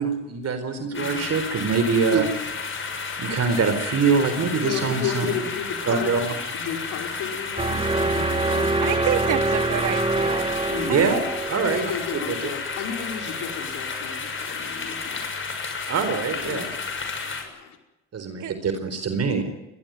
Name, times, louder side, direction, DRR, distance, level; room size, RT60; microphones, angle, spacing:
voice 1, 0.0-2.3 3.2-5.3 5.9-6.3 10.9-11.2 11.5-11.9 12.3-12.4 15.9-16.7 18.1-19.4, right 5 dB, 55° right, 8 dB, 4.2 m, -23 dB
voice 2, 0.9-1.2 2.8-2.9 4.5-6.2 6.5-8.7 10.7-11.2 11.5-15.9 16.4-17.8, left 7 dB, 85° left, 4 dB, 5.0 m, -34 dB
sound 1, 0.9-17.4, left 5 dB, 40° left, 6.6 m, -32 dB
sound 2, 7.6-13.6, right 3 dB, 20° right, 1.0 m, -26 dB
voice 3, 8.8-10.5 10.9-11.1 18.4-18.6, right 10 dB, 85° right, 7 dB, 3.2 m, -28 dB
23.0 x 20.0 x 9.6 m, 0.99 s
cardioid pair, 90°, 30 cm